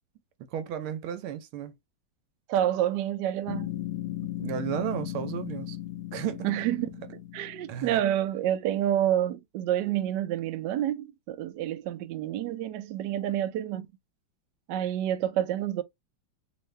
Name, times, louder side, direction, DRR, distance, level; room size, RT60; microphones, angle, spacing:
voice 1, 0.5-1.7 4.4-5.8 6.1-6.5 7.7-8.0, right 10 dB, 90° right, 1.6 m, -33 dB
voice 2, 2.5-3.7 6.4-13.9 14.7-15.8, right 11 dB, 70° right, 1.0 m, -28 dB
sound 1, 3.5-8.1, left 13 dB, 80° left, 1.5 m, -36 dB
3.6 x 2.6 x 3.2 m
omnidirectional pair, 2.3 m